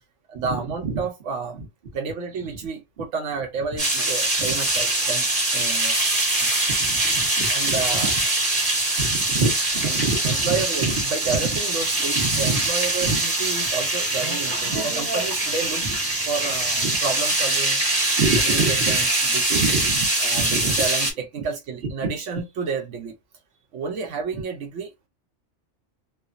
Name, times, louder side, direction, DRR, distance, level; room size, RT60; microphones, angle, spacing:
voice 1, 0.3-1.6 1.9-6.0 6.4-6.5 7.5-8.1 9.8-15.8 16.3-17.9 18.4-19.6 20.2-23.2 23.7-25.1, right 5 dB, 80° right, 1.0 m, -31 dB
sound 1, 3.8-21.1, right 2 dB, 25° right, 1.4 m, -23 dB
voice 2, 6.7-8.1 9.0-10.5 10.9-11.0 11.2-11.6 12.1-12.6 13.0-13.2 14.7-14.8 15.8-16.0 16.8-16.9 18.2-19.0 19.5-20.1 20.3-20.8 22.0-22.1, right 4 dB, 50° right, 1.1 m, -27 dB
3.2 x 2.2 x 2.4 m
omnidirectional pair, 1.2 m